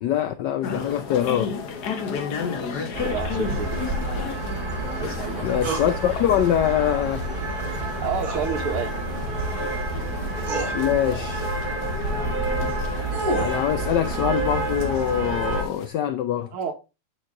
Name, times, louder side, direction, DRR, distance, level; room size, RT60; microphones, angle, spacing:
voice 1, 0.0-1.8 5.4-7.4 10.7-11.5 13.3-16.5, left 10 dB, 80° left, 0.9 m, -24 dB
sound 1, 0.6-15.9, left 6 dB, 55° left, 1.3 m, -34 dB
voice 2, 2.4-3.8 5.0-5.4 8.0-8.9 16.5-16.7, right 6 dB, 75° right, 2.2 m, -30 dB
sound 2, 2.9-15.6, right 2 dB, 30° right, 1.3 m, -29 dB
sound 3, 5.6-5.9 8.2-8.5 9.8-9.9 10.4-10.7 12.7-13.6, right 1 dB, 45° right, 2.3 m, -29 dB
9.0 x 4.6 x 3.6 m
omnidirectional pair, 2.4 m